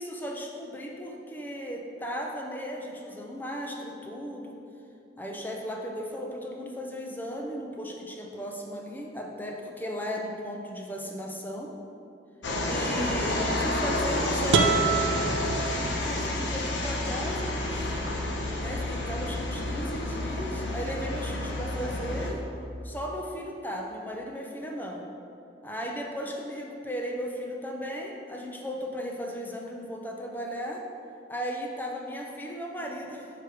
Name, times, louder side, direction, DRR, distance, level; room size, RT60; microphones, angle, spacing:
voice 1, 0.0-4.6 5.2-11.7 12.7-18.0 18.5-22.5 22.8-25.1 25.6-30.8 31.3-33.3, equal, 10° left, 0 dB, 0.6 m, -36 dB
sound 1, 12.4-22.3, left 1 dB, 80° left, 0.8 m, -30 dB
sound 2, 14.5-16.4, right 5 dB, 80° right, 0.5 m, -26 dB
6.5 x 5.0 x 4.6 m, 2.7 s
head